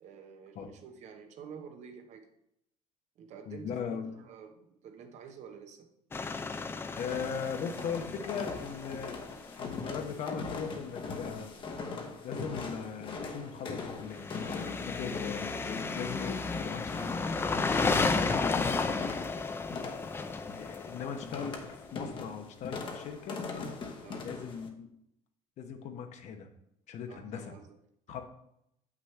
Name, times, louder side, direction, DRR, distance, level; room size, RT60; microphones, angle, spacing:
voice 1, 0.0-2.3 3.2-6.0 20.2-20.4 21.5-21.6 24.0-24.3 27.1-27.7, right 6 dB, 55° right, 6 dB, 1.0 m, -49 dB
voice 2, 3.5-4.1 6.9-9.2 9.6-11.5 12.2-17.2 17.8-19.1 20.5-23.4 24.2-24.9 25.6-26.5 26.9-27.5 28.1-28.2, left 6 dB, 55° left, 6 dB, 0.9 m, -39 dB
sound 1, 6.1-10.0 14.1-21.8, left 4 dB, 15° left, 0.4 m, -33 dB
sound 2, 7.0-24.7, left 4 dB, 35° left, 1.0 m, -42 dB
7.5 x 6.1 x 3.3 m, 0.78 s
cardioid pair, 125°, 14 cm